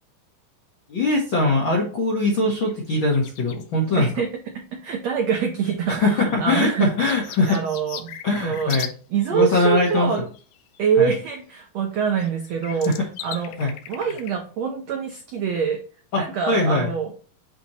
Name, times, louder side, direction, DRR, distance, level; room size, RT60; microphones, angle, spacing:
voice 1, 0.9-4.1 5.9-7.6 8.2-8.9 9.3-10.1 11.0-11.1 12.8-12.9 13.6-13.7 16.1-16.9, left 2 dB, 70° left, -2 dB, 1.1 m, -21 dB
sound 1, 2.4-2.5 2.6-3.7 5.0-5.1 6.2-9.0 9.2-10.8 11.9-12.0 12.2-14.3 14.9-15.0, left 11 dB, 90° left, 2.5 m, -39 dB
voice 2, 3.9-4.3 4.5-6.9 7.5-8.1 8.4-8.8 9.1-10.2 10.8-12.9 13.2-15.8 16.2-17.1, right 7 dB, 80° right, 3 dB, 1.5 m, -25 dB
8.2 x 2.9 x 4.2 m, 0.39 s
omnidirectional pair, 4.1 m